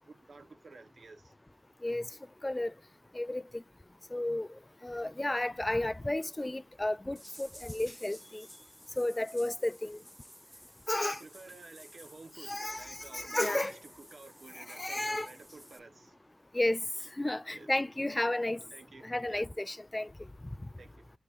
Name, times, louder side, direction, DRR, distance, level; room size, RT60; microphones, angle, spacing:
voice 1, 0.0-1.4 11.0-16.3 17.5-17.7 18.7-19.5 20.8-21.1, right 3 dB, 65° right, 1.0 m, -52 dB
voice 2, 3.1-3.6 4.1-4.5 4.8-8.5 9.0-10.0 10.9-11.2 12.4-13.8 14.5-15.3 16.5-16.8 17.2-18.6 19.0-20.1, left 1 dB, 20° left, 0.3 m, -32 dB
sound 1, 7.2-15.8, equal, ahead, 0.7 m, -54 dB
6.6 x 3.0 x 2.5 m
cardioid pair, 50°, 0 cm